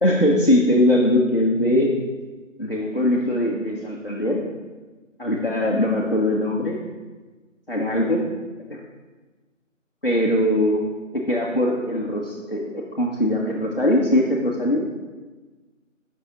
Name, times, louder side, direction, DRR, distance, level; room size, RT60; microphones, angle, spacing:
voice 1, 0.0-1.9 2.6-4.4 5.2-6.8 7.7-8.2 8.7-8.8 10.0-10.8 11.1-15.1, left 1 dB, 45° left, -3 dB, 0.6 m, -21 dB
7.2 x 5.4 x 2.9 m, 1.3 s
figure-of-eight pair, 175°, 40 cm